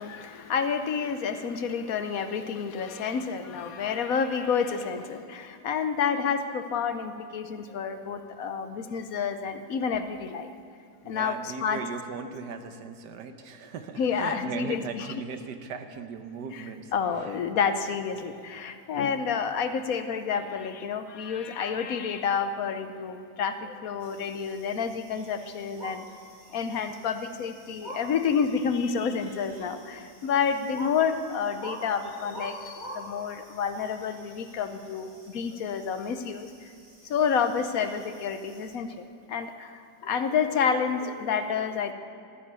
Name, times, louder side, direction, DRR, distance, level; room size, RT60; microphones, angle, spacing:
voice 1, 0.0-10.5 11.0-11.8 14.0-15.2 16.5-16.6 16.9-26.1 26.5-36.7 37.1-41.9, left 6 dB, 65° left, 9 dB, 1.1 m, -29 dB
voice 2, 11.0-17.4 18.2-18.3, right 5 dB, 85° right, 8 dB, 1.5 m, -38 dB
sound 1, 24.0-38.8, right 1 dB, 55° right, 3.0 m, -47 dB
13.5 x 10.0 x 6.9 m, 2.4 s
omnidirectional pair, 1.7 m